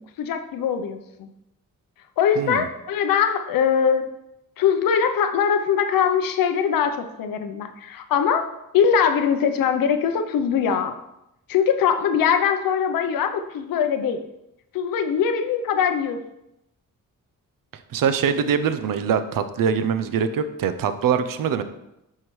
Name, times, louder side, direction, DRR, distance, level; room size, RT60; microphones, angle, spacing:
voice 1, 0.2-1.3 2.2-4.1 4.6-8.5 8.7-11.0 11.5-14.2 14.7-16.2, left 7 dB, 90° left, 7 dB, 0.7 m, -22 dB
voice 2, 2.4-2.7 17.9-21.6, right 7 dB, 75° right, 10 dB, 0.7 m, -23 dB
7.6 x 5.6 x 3.1 m, 0.87 s
cardioid pair, 90°, 33 cm